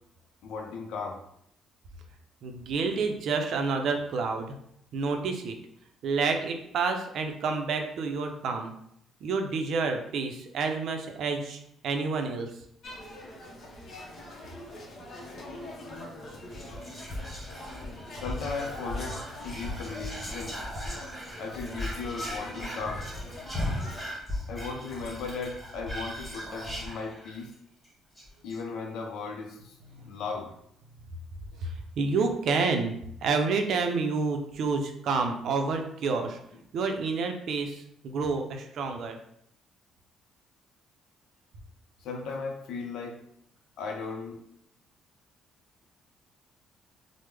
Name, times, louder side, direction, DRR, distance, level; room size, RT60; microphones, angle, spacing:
voice 1, 0.4-1.2 15.2-15.4 17.5-17.7 18.2-20.6 21.4-23.1 24.5-27.5 28.4-29.8 30.0-30.5 31.5-31.7 42.0-43.2 43.8-44.4, left 4 dB, 75° left, 4 dB, 0.5 m, -37 dB
voice 2, 2.4-4.6 4.9-5.6 6.0-8.7 9.2-12.5 31.6-36.4 36.7-39.2, right 4 dB, 65° right, 5 dB, 0.5 m, -29 dB
sound 1, 12.8-24.1, left 1 dB, 45° left, 0.7 m, -43 dB
Whispering, 16.5-27.5 27.8-27.9 28.2-28.6, left 1 dB, ahead, 0.9 m, -37 dB
3.2 x 2.0 x 3.4 m, 0.72 s
cardioid pair, 115°, 0 cm